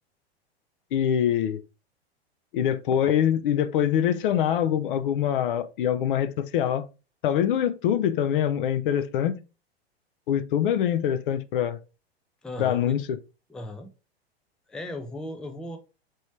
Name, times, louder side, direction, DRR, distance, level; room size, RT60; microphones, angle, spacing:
voice 1, 0.9-1.6 2.5-6.9 7.2-9.4 10.3-11.8 12.6-13.2, left 9 dB, 55° left, 0.5 m, -24 dB
voice 2, 12.4-13.0 13.5-13.9 14.7-15.8, left 1 dB, ahead, 0.4 m, -36 dB
4.5 x 3.0 x 3.1 m
figure-of-eight pair, 100°, 32 cm